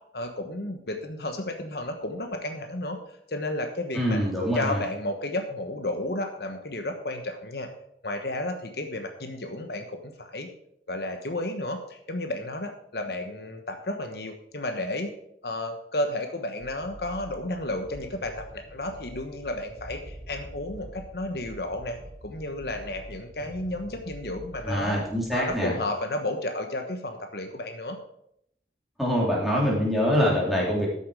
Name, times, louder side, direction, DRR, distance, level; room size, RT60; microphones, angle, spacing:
voice 1, 0.1-3.0 3.3-4.2 4.5-7.7 8.0-10.5 10.9-15.1 15.4-25.0 25.3-28.0, left 1 dB, 65° left, 5 dB, 1.2 m, -32 dB
voice 2, 3.9-4.8 24.6-25.7 29.0-30.9, equal, ahead, -4 dB, 3.1 m, -24 dB
sound 1, 16.6-25.5, equal, 20° right, 5.4 m, -46 dB
13.0 x 7.1 x 4.9 m, 0.74 s
head